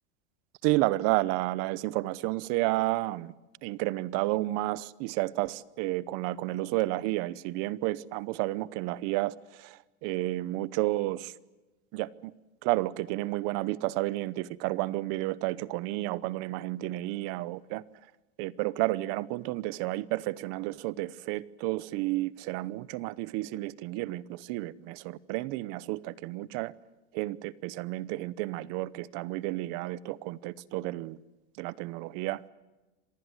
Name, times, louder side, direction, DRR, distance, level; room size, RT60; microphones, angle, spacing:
voice 1, 0.6-3.3 3.6-11.3 11.9-12.3 12.6-17.8 18.4-26.7 27.1-31.2 31.6-32.4, right 18 dB, 45° right, 0.8 m, -31 dB
26.5 x 19.5 x 8.0 m
supercardioid pair, 170°, 34 cm